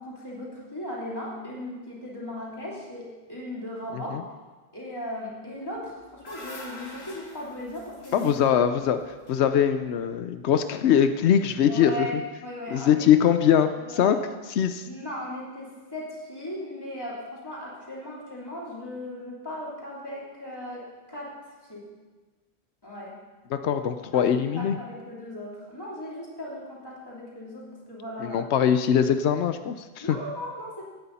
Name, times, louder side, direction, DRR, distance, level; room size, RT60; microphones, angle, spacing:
voice 1, 0.0-4.2 4.7-8.4 8.8-8.9 11.7-13.1 13.8-14.2 14.9-21.3 21.6-21.8 22.8-23.2 24.1-28.5 30.0-30.9, left 1 dB, 20° left, -5 dB, 3.3 m, -37 dB
sound 1, 5.8-10.0, left 1 dB, 70° left, 2.3 m, -45 dB
voice 2, 8.1-9.0 9.3-12.1 12.7-14.2 14.6-14.9 23.5-24.8 28.2-30.2, left 9 dB, 90° left, 9 dB, 0.9 m, -22 dB
17.0 x 9.7 x 4.1 m, 1.3 s
omnidirectional pair, 1.1 m